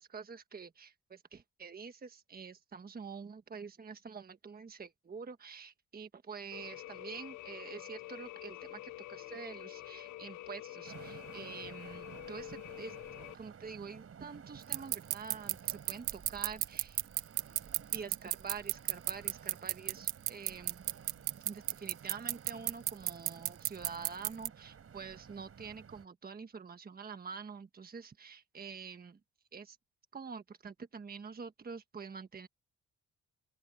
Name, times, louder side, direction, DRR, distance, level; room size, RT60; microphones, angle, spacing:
voice 1, 0.0-13.0 13.3-17.0 17.9-20.8 21.4-29.2 29.5-29.8 30.1-32.5, right 5 dB, 30° right, 1.4 m, -47 dB
sound 1, 6.5-13.3, left 16 dB, 70° left, 0.6 m, -47 dB
sound 2, 10.8-26.1, right 7 dB, 50° right, 5.2 m, -53 dB
sound 3, 14.7-24.5, right 18 dB, 85° right, 0.6 m, -31 dB
open air
cardioid pair, 90°, 30 cm